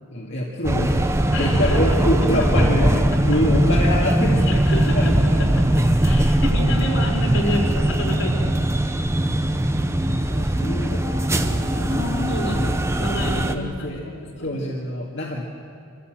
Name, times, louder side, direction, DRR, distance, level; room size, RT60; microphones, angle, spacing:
voice 1, 0.1-1.1 1.4-4.6 4.9-5.5 10.3-12.6 13.2-14.1 14.4-15.4, left 1 dB, 55° left, -3 dB, 2.1 m, -26 dB
sound 1, 0.6-13.5, right 1 dB, 15° right, 0.8 m, -20 dB
voice 2, 1.3-2.3 3.3-3.4 4.5-8.7 11.9-14.6, left 1 dB, 80° left, 0 dB, 4.2 m, -29 dB
25.0 x 15.5 x 7.7 m, 2.4 s
head